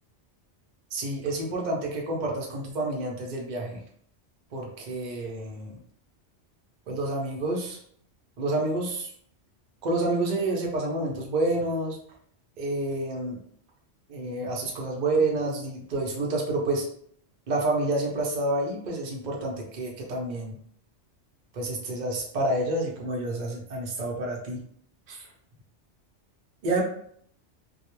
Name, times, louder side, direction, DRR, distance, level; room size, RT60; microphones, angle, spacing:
voice 1, 0.9-3.8 4.5-5.7 6.9-7.8 8.4-9.1 9.8-12.0 12.6-13.4 14.1-16.9 17.5-20.6 21.5-24.6 25.1-25.2 26.6-26.8, right 2 dB, 50° right, -1 dB, 0.6 m, -28 dB
2.3 x 2.0 x 2.9 m, 0.64 s
omnidirectional pair, 1.2 m